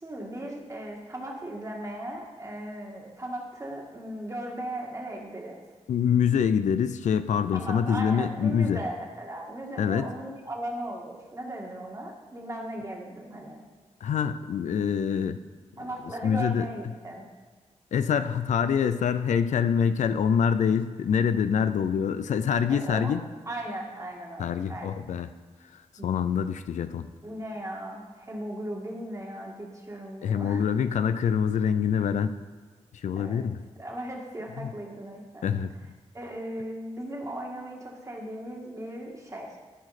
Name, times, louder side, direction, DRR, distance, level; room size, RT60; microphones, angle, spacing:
voice 1, 0.0-5.6 7.5-13.6 15.8-17.2 22.7-23.2 23.5-24.9 26.0-26.1 27.2-30.7 33.2-33.4 33.8-35.5 36.1-39.5, right 1 dB, 25° right, -1 dB, 1.9 m, -37 dB
voice 2, 5.9-8.8 9.8-10.1 14.0-15.4 16.2-16.7 17.9-23.2 24.4-25.3 26.0-27.1 30.2-32.3 33.0-33.6 34.6-34.7 35.4-35.7, left 7 dB, 90° left, 11 dB, 0.4 m, -25 dB
13.0 x 5.0 x 4.2 m, 1.5 s
wide cardioid pair, 90°, 12 cm